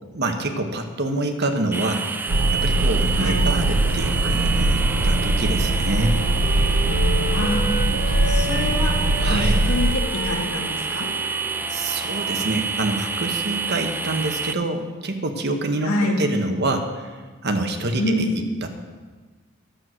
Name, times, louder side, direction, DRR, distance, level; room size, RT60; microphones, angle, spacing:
voice 1, 0.0-6.2 9.2-9.6 11.7-15.9 16.2-17.1 17.4-18.7, right 2 dB, 50° right, 5 dB, 1.1 m, -26 dB
sound 1, 1.7-14.5, right 5 dB, 10° right, 0.3 m, -28 dB
sound 2, 2.3-10.0, right 1 dB, 80° right, 0.8 m, -21 dB
voice 2, 3.2-3.5 7.3-7.7 8.3-8.9 9.3-11.1 15.8-16.2 18.0-18.3, left 1 dB, 75° left, 1 dB, 2.0 m, -26 dB
Wind instrument woodwind instrument, 4.8-13.0, left 2 dB, 45° left, 2.1 m, -35 dB
11.5 x 7.8 x 6.3 m, 1.4 s
head